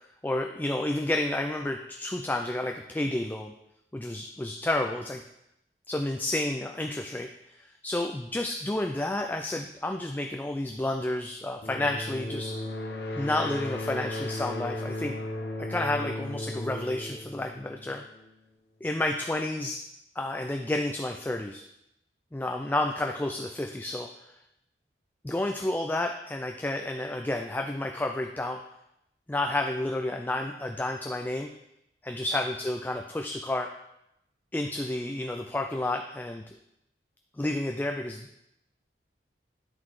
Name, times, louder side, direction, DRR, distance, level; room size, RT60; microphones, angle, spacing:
voice 1, 0.2-3.5 3.9-5.2 5.9-12.6 13.2-15.2 15.6-18.0 18.8-19.8 20.2-21.6 22.3-24.3 25.2-28.6 29.3-31.5 32.0-33.7 34.5-36.4 37.3-38.4, left 1 dB, 10° left, 3 dB, 0.3 m, -30 dB
sound 1, 11.6-18.3, left 1 dB, 60° left, 1.0 m, -36 dB
10.5 x 3.9 x 4.8 m, 0.83 s
head